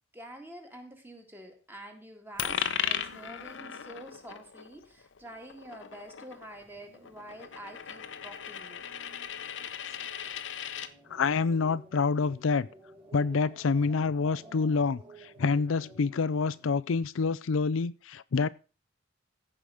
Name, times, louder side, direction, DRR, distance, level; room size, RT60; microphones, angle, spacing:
voice 1, 0.1-8.9, right 1 dB, 10° right, 2.1 m, -47 dB
Coin (dropping), 2.4-10.9, left 8 dB, 65° left, 0.8 m, -37 dB
sound 1, 6.3-16.7, right 2 dB, 25° right, 4.8 m, -55 dB
voice 2, 11.1-12.7 13.1-18.5, left 4 dB, 85° left, 0.5 m, -27 dB
14.5 x 5.1 x 6.4 m
head